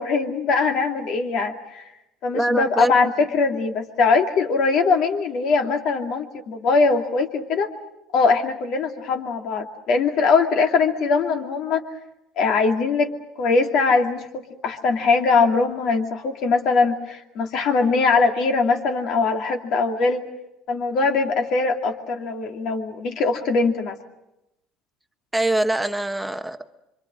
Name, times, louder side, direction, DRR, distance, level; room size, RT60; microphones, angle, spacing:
voice 1, 0.0-1.8 2.2-7.7 8.1-11.8 12.4-13.1 13.4-20.2 20.7-24.0, left 4 dB, 55° left, 4 dB, 2.6 m, -21 dB
voice 2, 2.3-3.0 25.3-26.7, right 1 dB, 5° right, 7 dB, 1.1 m, -24 dB
27.5 x 25.0 x 6.3 m, 0.89 s
cardioid pair, 150°, 0 cm